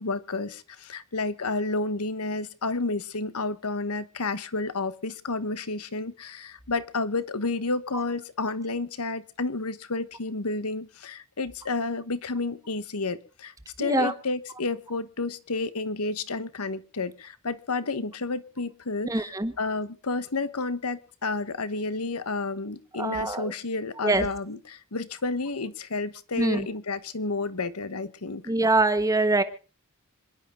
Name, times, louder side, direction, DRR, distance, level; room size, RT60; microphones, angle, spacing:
voice 1, 0.0-28.4, left 3 dB, 85° left, 1.2 m, -31 dB
voice 2, 13.8-14.1 19.0-19.5 23.0-23.5 24.0-24.3 26.4-26.7 28.5-29.4, right 2 dB, 15° right, 1.3 m, -24 dB
26.5 x 11.0 x 3.8 m
head